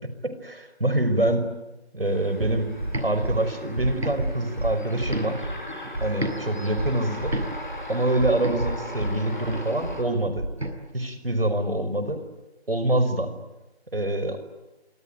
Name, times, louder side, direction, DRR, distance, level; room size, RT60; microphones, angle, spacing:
voice 1, 0.2-1.4 1.9-2.7 3.0-5.4 6.0-7.3 7.9-10.4 10.9-12.2 12.7-13.3 13.9-14.4, right 1 dB, 60° right, 10 dB, 5.5 m, -25 dB
sound 1, 2.0-10.0, left 1 dB, 45° left, 6.9 m, -39 dB
sound 2, 2.4-6.4 6.7-10.7, right 1 dB, 75° right, 7.1 m, -30 dB
26.5 x 24.5 x 9.2 m, 1.0 s
figure-of-eight pair, 175°, 32 cm